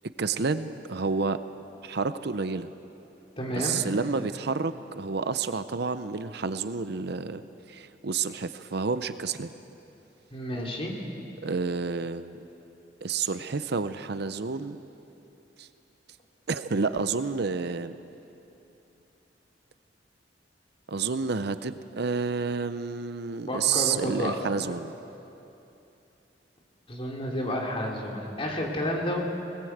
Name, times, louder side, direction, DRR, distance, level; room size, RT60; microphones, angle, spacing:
voice 1, 0.2-1.4 1.8-2.7 3.5-7.4 7.7-9.5 11.4-12.4 13.0-14.8 15.6-15.7 16.5-18.0 20.9-24.9, right 4 dB, 65° right, 11 dB, 0.7 m, -29 dB
voice 2, 3.4-3.8 10.3-10.9 23.5-24.3 26.9-29.2, left 1 dB, 30° left, -1 dB, 2.9 m, -30 dB
20.0 x 20.0 x 8.0 m, 2.9 s
head